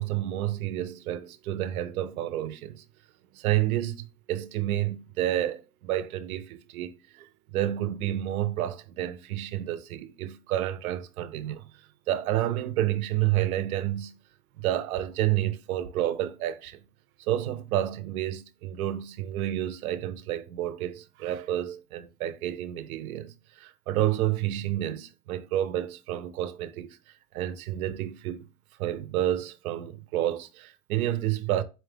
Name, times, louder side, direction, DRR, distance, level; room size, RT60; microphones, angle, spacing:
voice 1, 0.0-2.8 3.3-14.1 14.6-16.8 17.2-27.0 27.3-28.4 28.8-31.6, right 13 dB, 70° right, 0.6 m, -30 dB
4.2 x 2.2 x 3.3 m
supercardioid pair, 165°, 45 cm